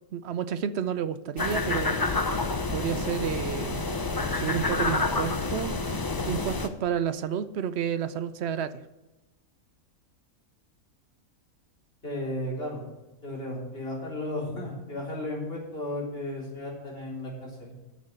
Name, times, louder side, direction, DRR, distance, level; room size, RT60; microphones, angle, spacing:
voice 1, 0.1-2.0 2.7-3.8 4.3-5.7 6.3-8.8, right 8 dB, 60° right, 13 dB, 0.7 m, -30 dB
sound 1, 1.4-6.7, left 3 dB, 25° left, 0.4 m, -28 dB
voice 2, 12.0-12.8 13.2-17.8, left 1 dB, 40° left, -4 dB, 4.0 m, -34 dB
9.3 x 6.8 x 7.6 m, 1.0 s
omnidirectional pair, 1.5 m